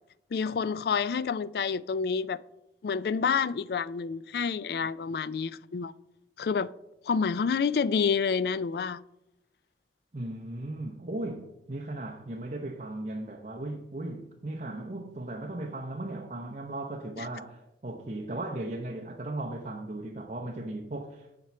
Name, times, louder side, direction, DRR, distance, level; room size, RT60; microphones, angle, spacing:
voice 1, 0.3-2.4 2.8-5.9 6.4-6.7 7.1-9.0 17.2-17.3, left 6 dB, 60° left, 0.3 m, -28 dB
voice 2, 10.1-21.3, right 2 dB, 40° right, 0.7 m, -37 dB
7.5 x 4.5 x 6.8 m
head